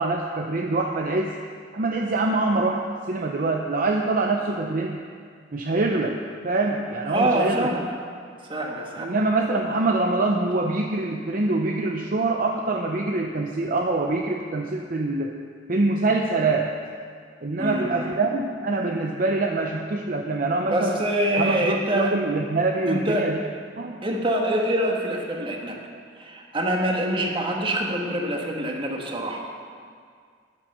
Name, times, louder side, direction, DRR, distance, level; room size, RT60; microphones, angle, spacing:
voice 1, 0.0-1.4 1.7-5.0 5.5-6.2 6.4-7.7 9.0-15.4 15.7-16.7 17.4-21.0 21.4-23.4 23.8-24.0, right 2 dB, 45° right, 2 dB, 0.7 m, -24 dB
voice 2, 7.1-7.9 8.5-9.1 17.6-18.2 20.7-22.1 22.9-23.3 24.0-25.8 26.2-29.4, right 1 dB, 30° right, 0 dB, 1.6 m, -25 dB
11.0 x 10.0 x 6.7 m, 2.1 s
head